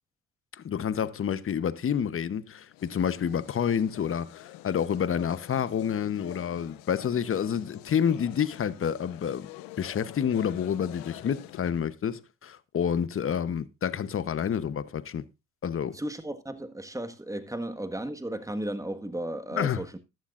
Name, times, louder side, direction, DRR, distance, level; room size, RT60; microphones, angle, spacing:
voice 1, 0.5-9.5 9.8-15.2 15.6-16.0 19.5-19.8, left 8 dB, 40° left, 0.9 m, -29 dB
sound 1, 2.7-11.9, left 16 dB, 85° left, 0.8 m, -47 dB
voice 2, 15.9-20.0, right 1 dB, 10° right, 1.5 m, -35 dB
14.0 x 11.5 x 2.5 m
supercardioid pair, 70°, 34 cm